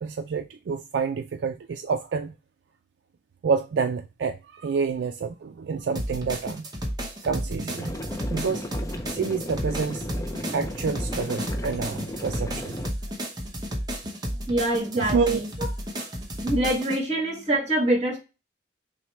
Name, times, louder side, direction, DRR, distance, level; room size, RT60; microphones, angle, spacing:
voice 1, 0.0-2.3 3.4-6.7 7.2-7.9 8.3-8.7 9.1-10.1 10.5-12.8 15.0-15.4, right 5 dB, 70° right, 0.3 m, -28 dB
sound 1, 6.0-17.0, equal, 25° right, 0.9 m, -32 dB
sound 2, 7.8-12.9, left 1 dB, 20° left, 0.4 m, -36 dB
voice 2, 14.4-15.5 16.4-18.2, right 1 dB, 40° right, 1.9 m, -25 dB
6.2 x 2.1 x 3.1 m
head